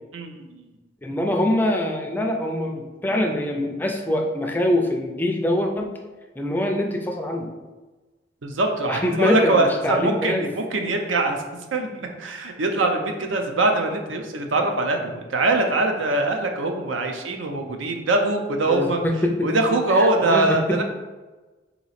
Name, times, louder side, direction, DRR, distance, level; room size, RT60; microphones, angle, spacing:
voice 1, 0.1-0.6 8.4-11.4 11.7-19.0 19.4-20.8, right 2 dB, 85° right, 4 dB, 0.6 m, -23 dB
voice 2, 1.0-6.0 6.4-7.5 8.9-10.5 18.7-19.5 19.9-20.8, left 1 dB, 10° left, 3 dB, 0.4 m, -24 dB
3.8 x 3.0 x 4.1 m, 1.2 s
head